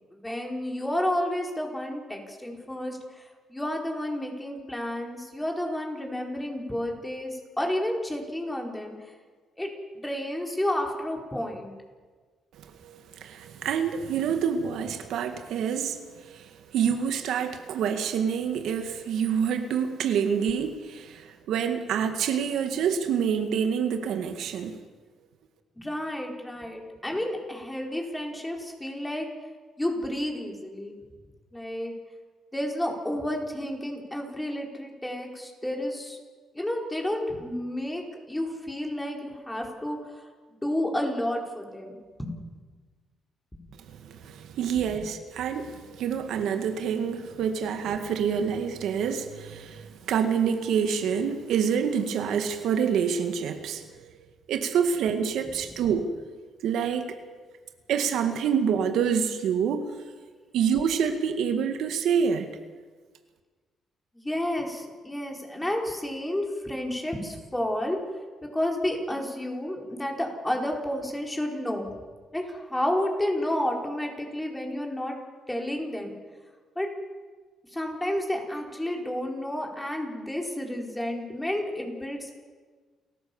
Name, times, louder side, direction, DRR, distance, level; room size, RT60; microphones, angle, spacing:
voice 1, 0.1-8.9 9.6-11.7 25.8-29.3 29.8-30.9 31.5-31.9 32.5-36.2 36.5-40.1 40.5-42.3 43.5-43.6 64.1-68.0 68.4-71.9 72.3-75.1 75.5-76.1 76.7-76.9 77.7-82.3, left 1 dB, 10° left, 4.9 m, -31 dB
voice 2, 12.6-24.8 43.9-54.1 54.5-56.1 56.6-57.1 57.9-59.9 60.5-62.5, right 7 dB, 80° right, 1.9 m, -27 dB
29.5 x 15.0 x 7.2 m
cardioid pair, 90°, 0 cm